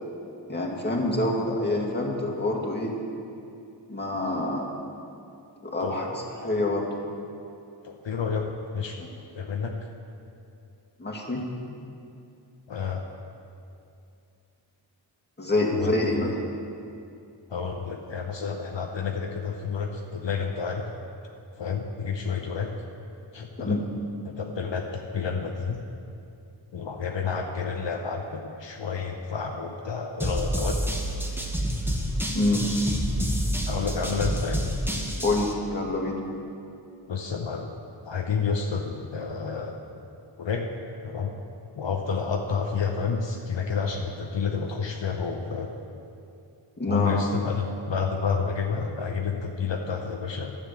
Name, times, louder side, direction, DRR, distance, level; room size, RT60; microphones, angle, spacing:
voice 1, 0.5-2.9 3.9-4.7 5.6-6.9 11.0-11.4 15.4-16.3 23.6-23.8 32.3-32.6 35.2-36.2 46.8-47.1, left 2 dB, 20° left, -3 dB, 2.0 m, -26 dB
voice 2, 7.8-8.5 8.7-9.1 9.3-9.8 12.7-13.0 15.7-15.9 17.5-20.8 21.6-22.7 23.3-23.8 24.4-25.8 26.7-30.9 33.7-34.6 37.1-37.7 38.0-39.8 40.4-40.7 41.0-41.3 41.7-45.7 46.9-50.6, left 5 dB, 70° left, 2 dB, 0.8 m, -30 dB
sound 1, 30.2-35.5, equal, 5° right, 1.3 m, -28 dB
10.5 x 7.3 x 7.4 m, 2.6 s
wide cardioid pair, 55°, 46 cm